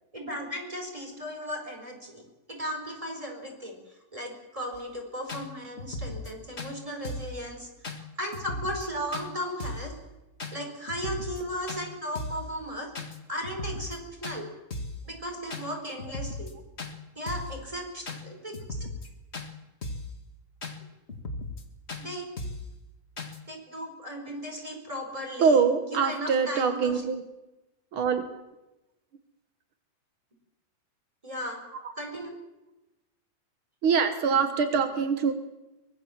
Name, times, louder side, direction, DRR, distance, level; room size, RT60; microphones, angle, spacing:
voice 1, 0.1-2.2 2.5-3.8 4.1-7.7 8.2-9.9 10.5-12.9 13.3-14.5 15.1-16.5 17.1-18.9 22.0-22.3 23.5-25.6 25.9-27.0 31.2-31.6 32.0-32.4, equal, 10° right, 3 dB, 4.6 m, -36 dB
sound 1, 4.7-4.8 5.3-5.4 5.8-6.3 6.6-6.7 7.0-7.4 7.8-8.0 8.3-8.9 9.1-9.3 9.6-9.9 10.4-10.5 10.9-11.4 11.7-11.8 12.2-12.5 12.9-13.2 13.4-14.0 14.2-14.4 14.7-15.0 15.5-15.7 16.0-16.5 16.8-16.9 17.3-17.6 18.1-18.2 18.5-19.1 19.3-19.5 19.8-20.1 20.6-20.8 21.1-21.6 21.9-22.0 22.4-22.7 23.2-23.4, left 2 dB, 35° left, 1.0 m, -36 dB
voice 2, 25.4-27.2 27.9-28.3 31.8-31.9 33.8-35.3, right 5 dB, 85° right, 8 dB, 1.1 m, -24 dB
24.0 x 20.0 x 7.4 m, 1.0 s
omnidirectional pair, 4.5 m